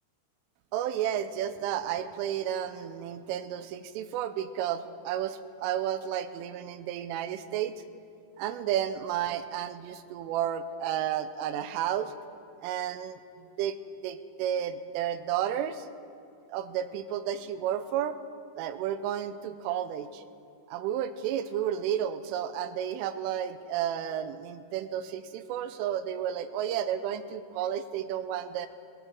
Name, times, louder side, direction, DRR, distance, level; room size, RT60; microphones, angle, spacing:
voice 1, 0.7-7.8 8.4-12.1 12.6-13.2 13.6-13.8 14.0-15.9 16.5-18.2 18.6-20.2 20.7-28.7, right 10 dB, 85° right, 11 dB, 3.2 m, -32 dB
20.5 x 19.0 x 3.7 m, 2.3 s
omnidirectional pair, 5.7 m